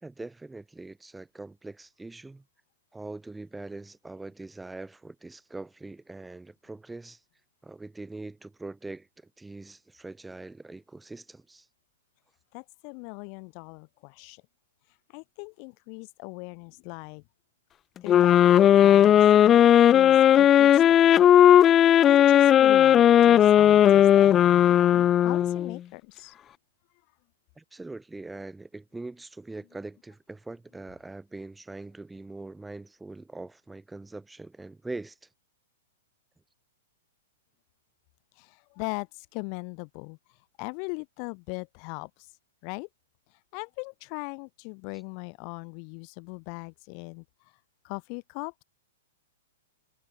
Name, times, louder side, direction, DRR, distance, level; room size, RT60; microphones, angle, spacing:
voice 1, 0.0-2.4 2.9-7.2 7.6-11.7 27.6-35.3, right 2 dB, 5° right, 2.9 m, -42 dB
voice 2, 12.5-14.4 15.1-17.2 18.0-19.2 19.9-21.1 22.0-26.3 38.4-40.2 40.6-42.1 42.6-42.9 43.5-47.2 47.8-48.6, left 40 dB or more, 45° left, 4.6 m, -39 dB
sound 1, 18.1-25.8, left 10 dB, 25° left, 0.5 m, -17 dB
hypercardioid pair, 110°, 0 cm